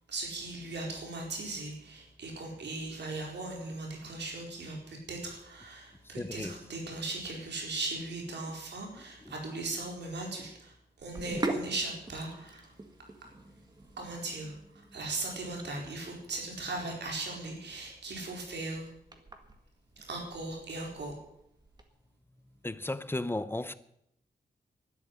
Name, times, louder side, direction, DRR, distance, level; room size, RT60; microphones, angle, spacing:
voice 1, 0.1-10.7 11.0-12.7 14.0-14.5 14.9-18.9 20.0-21.2, right 2 dB, 90° right, 4.3 m, -38 dB
voice 2, 6.2-6.6 9.3-9.4 22.6-23.7, left 2 dB, 15° left, 0.7 m, -34 dB
Sink (filling or washing), 11.0-21.8, right 2 dB, 25° right, 1.8 m, -43 dB
12.0 x 10.0 x 9.5 m
wide cardioid pair, 125°, 17 cm